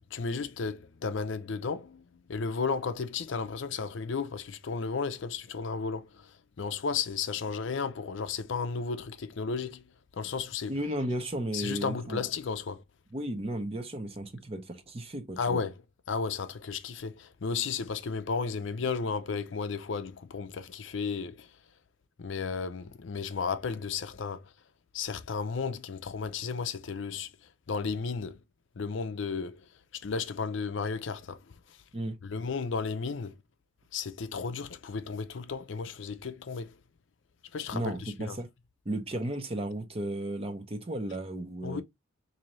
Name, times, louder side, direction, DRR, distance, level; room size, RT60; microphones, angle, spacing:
voice 1, 0.1-9.8 10.1-10.7 11.5-12.8 15.4-15.8 16.1-21.5 22.2-24.5 24.9-27.3 27.7-28.4 28.8-29.6 29.9-31.4 31.7-31.8 32.2-33.4 33.9-36.8 37.5-38.4 41.6-41.8, left 5 dB, 65° left, 0.5 m, -34 dB
voice 2, 10.7-12.2 13.1-15.6 31.9-32.2 37.7-38.5 38.9-41.8, right 1 dB, 30° right, 0.7 m, -34 dB
4.0 x 2.7 x 3.0 m
head